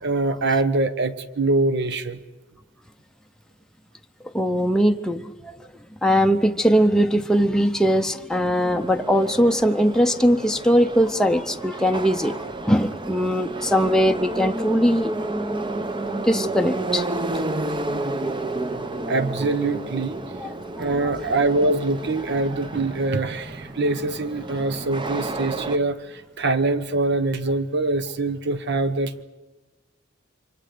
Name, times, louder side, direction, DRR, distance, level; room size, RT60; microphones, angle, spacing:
voice 1, 0.0-2.2 19.1-20.2 20.8-26.0 26.4-29.2, right 2 dB, 60° right, 12 dB, 1.2 m, -23 dB
voice 2, 4.3-5.5 6.0-12.3 12.7-15.1 16.3-17.0 20.4-20.5 20.8-21.0, equal, 5° left, 4 dB, 0.7 m, -20 dB
Subway metro underground, 8.7-25.8, right 2 dB, 25° right, 0.8 m, -31 dB
28.5 x 25.0 x 5.1 m, 1.2 s
head